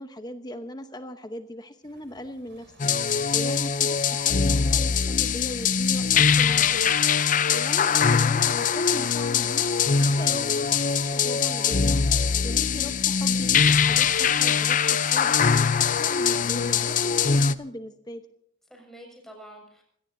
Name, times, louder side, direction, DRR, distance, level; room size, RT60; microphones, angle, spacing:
voice 1, 0.0-2.7 3.0-6.9 7.5-9.6 10.0-12.1 12.4-18.2, equal, 20° left, 8 dB, 1.0 m, -39 dB
sound 1, 1.8-9.1, right 2 dB, 65° right, 7.2 m, -57 dB
sound 2, 2.8-17.5, left 6 dB, 40° left, 0.6 m, -22 dB
voice 2, 7.7-8.1 18.7-19.8, right 1 dB, ahead, 0 dB, 6.5 m, -47 dB
25.5 x 17.5 x 2.7 m, 0.70 s
head